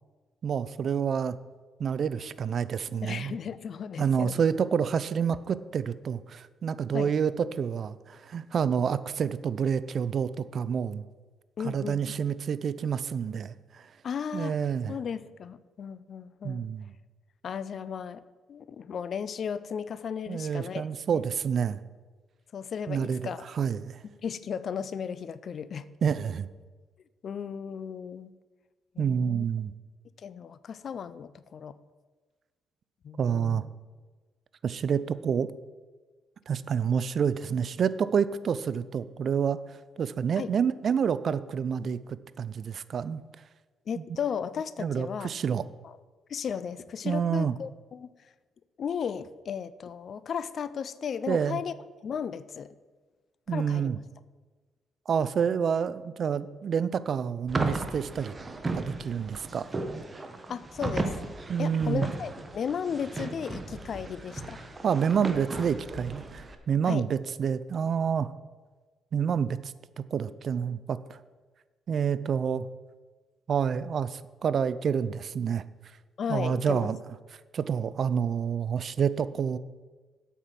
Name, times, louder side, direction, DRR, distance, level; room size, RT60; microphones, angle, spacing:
voice 1, 0.4-1.4 1.8-3.4 4.0-11.0 11.6-13.9 14.3-14.9 16.4-16.9 20.3-21.8 22.9-23.2 23.5-24.0 26.0-26.5 29.0-29.7 33.2-33.6 34.6-35.5 36.5-42.0 42.4-43.2 44.0-44.1 44.8-45.6 47.0-47.5 51.3-51.6 53.5-54.0 55.1-58.3 58.7-59.7 61.5-62.1 64.8-68.3 69.1-69.7 70.1-71.2 71.9-72.7 73.5-75.6 76.3-77.0 77.5-79.6, right 7 dB, 55° right, 16 dB, 0.4 m, -28 dB
voice 2, 3.0-4.5 6.9-7.1 11.6-12.1 14.0-14.6 14.9-16.6 17.4-18.2 18.5-20.9 21.1-21.2 22.5-23.4 24.2-25.9 27.2-28.3 28.9-29.4 30.2-31.8 33.0-33.6 40.4-40.5 43.9-45.3 46.3-48.1 48.8-51.7 52.0-52.8 53.5-53.9 60.5-61.1 61.6-64.6 66.9-67.1 76.2-76.9, left 7 dB, 55° left, 16 dB, 0.4 m, -35 dB
sound 1, 57.5-66.5, right 3 dB, 25° right, 1.0 m, -35 dB
8.2 x 5.8 x 7.4 m, 1.3 s
cardioid pair, 90°, 0 cm